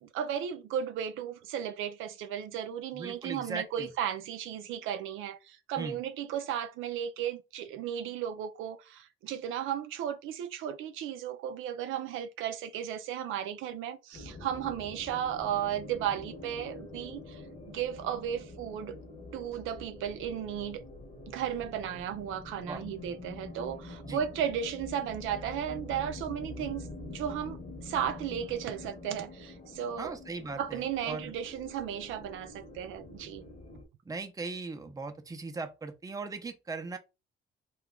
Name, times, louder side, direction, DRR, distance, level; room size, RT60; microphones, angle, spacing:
voice 1, 0.0-17.4 17.7-19.0 19.3-20.8 21.3-30.1 30.6-33.4, right 9 dB, 85° right, 0.5 m, -35 dB
voice 2, 2.9-3.9 5.8-6.0 22.6-22.8 24.0-24.2 30.0-31.3 34.0-37.0, right 3 dB, 15° right, 0.6 m, -39 dB
sound 1, 14.1-33.8, left 2 dB, 35° left, 0.9 m, -46 dB
2.9 x 2.3 x 3.6 m
cardioid pair, 90°, 20 cm